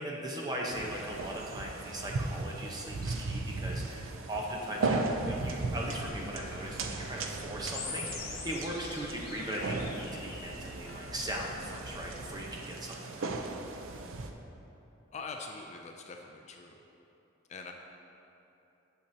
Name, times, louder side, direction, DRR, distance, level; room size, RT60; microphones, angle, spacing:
voice 1, 0.0-13.4, right 1 dB, 20° right, -2 dB, 0.9 m, -39 dB
sound 1, 0.7-14.3, right 3 dB, 80° right, 0.5 m, -37 dB
sound 2, 5.9-12.4, left 1 dB, 90° left, 0.9 m, -49 dB
sound 3, 7.7-10.7, left 5 dB, 55° left, 0.8 m, -43 dB
voice 2, 15.1-16.8 17.5-17.7, left 4 dB, 35° left, 3 dB, 0.4 m, -43 dB
9.7 x 6.6 x 2.8 m, 2.9 s
head